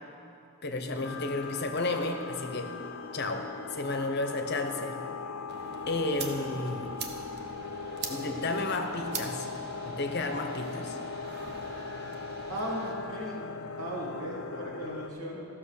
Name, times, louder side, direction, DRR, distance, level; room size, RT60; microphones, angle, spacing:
voice 1, 0.6-2.7 3.1-5.1 5.9-6.9 8.1-9.5 9.8-11.0, left 2 dB, 50° left, 5 dB, 0.8 m, -32 dB
sound 1, 1.0-15.1, left 4 dB, 75° left, 0.5 m, -39 dB
sound 2, 5.5-12.9, right 5 dB, 50° right, 0.9 m, -44 dB
voice 2, 12.5-13.4 13.8-15.5, equal, 90° right, -3 dB, 2.4 m, -37 dB
13.0 x 6.1 x 6.5 m, 2.6 s
head